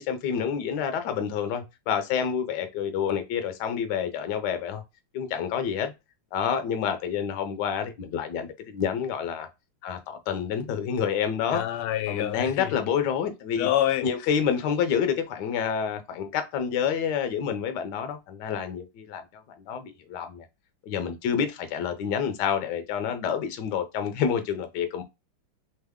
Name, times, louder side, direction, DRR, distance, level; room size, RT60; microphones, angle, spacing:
voice 1, 0.0-4.8 5.1-5.9 6.3-9.5 9.8-11.6 12.1-13.7 14.0-20.4 20.8-25.0, left 7 dB, 65° left, 1.2 m, -28 dB
voice 2, 11.5-12.7 13.6-14.1, left 12 dB, 85° left, 1.5 m, -26 dB
3.6 x 3.4 x 3.5 m
omnidirectional pair, 2.4 m